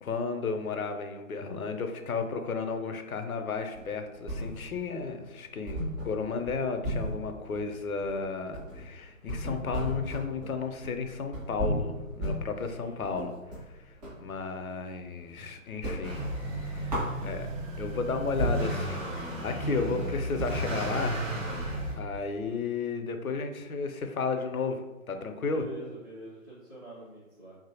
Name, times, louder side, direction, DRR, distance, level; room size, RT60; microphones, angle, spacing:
voice 1, 0.0-13.3 14.2-16.2 16.8-17.5 17.8-21.2 21.9-24.8 25.1-25.6, left 4 dB, 85° left, 6 dB, 0.5 m, -33 dB
sound 1, 3.7-4.9 5.2-5.3 5.6-14.2 14.6-15.4 15.7-17.7 18.1-18.2 18.4-22.5, equal, 30° right, 0.9 m, -36 dB
voice 2, 12.6-13.0 25.5-27.6, right 1 dB, 10° right, -16 dB, 0.6 m, -45 dB
Motor vehicle (road) / Accelerating revving vroom, 16.0-21.9, right 1 dB, 65° right, 1.0 m, -33 dB
2.8 x 2.5 x 2.7 m, 1.1 s
figure-of-eight pair, 140°, 41 cm